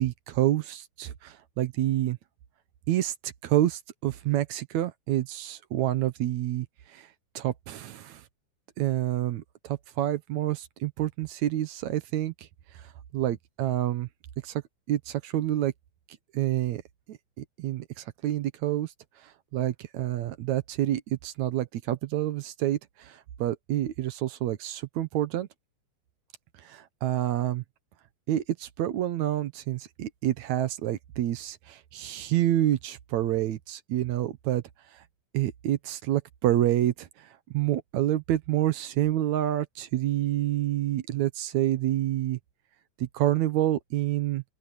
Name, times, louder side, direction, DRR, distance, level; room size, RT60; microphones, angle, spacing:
voice 1, 0.0-2.2 2.9-7.1 7.4-8.2 8.8-12.3 12.7-14.1 14.4-14.6 14.9-15.7 16.3-16.8 17.1-18.9 19.2-25.5 26.6-27.6 28.3-34.6 34.9-35.0 35.3-42.4 43.0-44.4, right 13 dB, 70° right, 2.2 m, -28 dB
open air
omnidirectional pair, 3.5 m